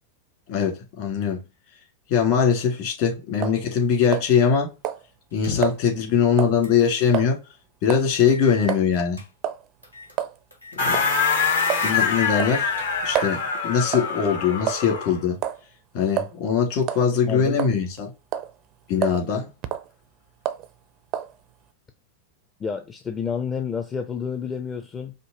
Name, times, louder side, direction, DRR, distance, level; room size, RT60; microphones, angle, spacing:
voice 1, 0.5-1.4 2.1-4.7 5.3-7.4 7.8-9.2 10.7-11.0 11.8-12.7 13.0-15.4 15.9-18.1 18.9-19.5, left 7 dB, 50° left, 1.9 m, -22 dB
sound 1, 3.4-3.6 4.1-4.6 4.8-5.0 5.6-5.8 6.4-6.6 7.1-7.3 7.9-8.1 8.7-8.8 9.4-9.6 10.2-10.3 10.9-11.1 11.7-11.9 12.4-13.4 13.9-14.2 14.7-15.0 15.4-15.6 16.2-16.3 16.8-17.1 17.6-18.0 18.3-18.5 19.0-19.2 19.6-19.9 20.5-20.7 21.1-21.3, right 11 dB, 35° right, 0.4 m, -28 dB
sound 2, 5.3-5.9 6.6-6.8 7.2-7.3 8.2-9.3 9.8-10.2 10.5-10.8 11.3-11.6 11.9-12.0 12.5-13.3, left 3 dB, 85° left, 1.0 m, -38 dB
sound 3, 10.8-15.2, left 5 dB, 65° left, 1.1 m, -24 dB
voice 2, 17.3-17.6 22.6-25.1, left 6 dB, 20° left, 0.5 m, -29 dB
5.1 x 2.1 x 2.9 m
figure-of-eight pair, 90°, 0 cm